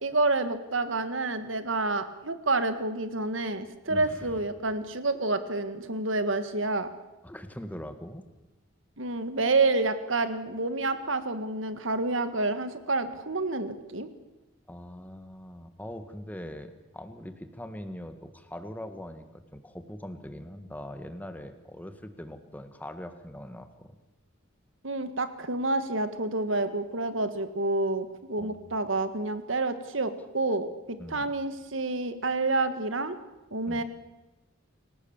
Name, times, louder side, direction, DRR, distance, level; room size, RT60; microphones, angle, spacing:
voice 1, 0.0-6.9 9.0-14.1 24.8-33.2 33.5-33.8, right 2 dB, 75° right, 11 dB, 1.7 m, -28 dB
voice 2, 3.9-4.4 7.2-8.2 14.7-19.3 19.5-24.0 28.4-28.7 31.0-31.3 33.7-33.8, equal, 10° left, 8 dB, 1.7 m, -42 dB
28.0 x 17.5 x 7.3 m, 1.1 s
head